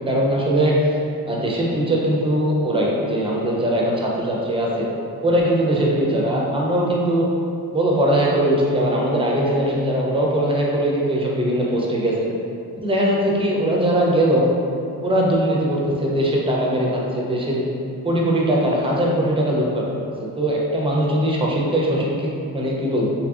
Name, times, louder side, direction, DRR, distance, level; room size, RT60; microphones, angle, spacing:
voice 1, 0.1-0.8 1.3-4.9 5.2-7.3 7.7-12.2 12.8-14.5 15.0-17.7 18.0-19.9 20.2-23.1, right 1 dB, 15° right, -3 dB, 0.3 m, -20 dB
2.6 x 2.6 x 2.3 m, 2.5 s
cardioid pair, 105°, 39 cm